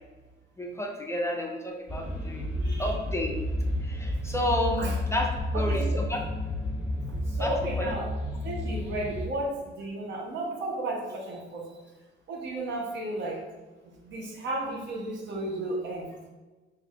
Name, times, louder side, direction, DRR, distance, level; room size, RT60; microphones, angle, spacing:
voice 1, 0.6-2.4 2.8-3.4 3.8-4.8 5.1-6.2 7.4-7.9, left 1 dB, 15° left, 1 dB, 0.5 m, -31 dB
sound 1, 1.9-9.3, left 1 dB, 5° right, 0.8 m, -31 dB
voice 2, 2.6-3.0 4.8-5.0 5.5-6.0 7.3-8.1 8.4-11.6 12.3-13.4 14.0-16.1, right 1 dB, 65° right, -1 dB, 0.9 m, -33 dB
2.6 x 2.4 x 4.2 m, 1.2 s
cardioid pair, 90°, 20 cm